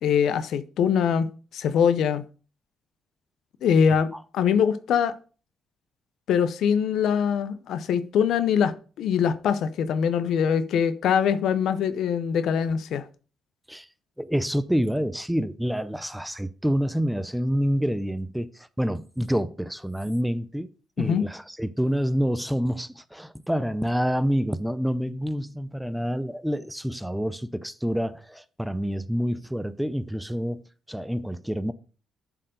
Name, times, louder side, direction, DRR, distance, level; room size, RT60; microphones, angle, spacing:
voice 1, 0.0-1.3 1.5-2.2 3.6-4.1 4.3-5.1 6.3-13.0 21.0-21.2, left 7 dB, 75° left, 0.6 m, -23 dB
voice 2, 14.2-20.7 21.0-31.7, equal, 5° right, 0.5 m, -27 dB
7.3 x 4.6 x 5.3 m
cardioid pair, 90°, 0 cm